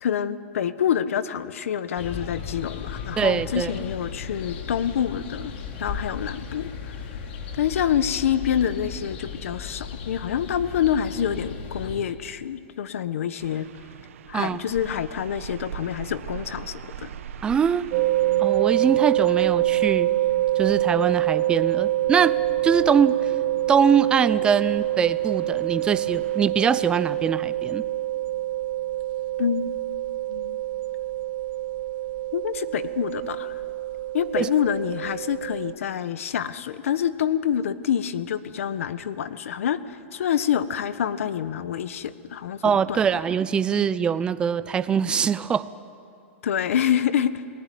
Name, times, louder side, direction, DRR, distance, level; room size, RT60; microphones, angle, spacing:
voice 1, 0.0-5.5 5.8-6.9 7.5-13.7 14.3-17.1 29.4-29.7 30.3-30.6 32.3-33.6 34.1-43.0 46.4-47.3, left 9 dB, 80° left, 13 dB, 1.4 m, -27 dB
sound 1, 2.0-12.0, left 5 dB, 55° left, 3.5 m, -36 dB
voice 2, 3.2-3.7 14.3-14.7 17.4-17.9 18.4-20.1 20.6-22.4 22.6-23.1 23.7-27.8 34.4-34.5 42.6-45.7, right 7 dB, 15° right, 14 dB, 0.6 m, -23 dB
sound 2, 13.4-26.5, right 9 dB, 75° right, 1.4 m, -43 dB
sound 3, 17.9-35.7, right 15 dB, 45° right, 1.1 m, -25 dB
30.0 x 20.0 x 9.4 m, 2.5 s
supercardioid pair, 160°, 7 cm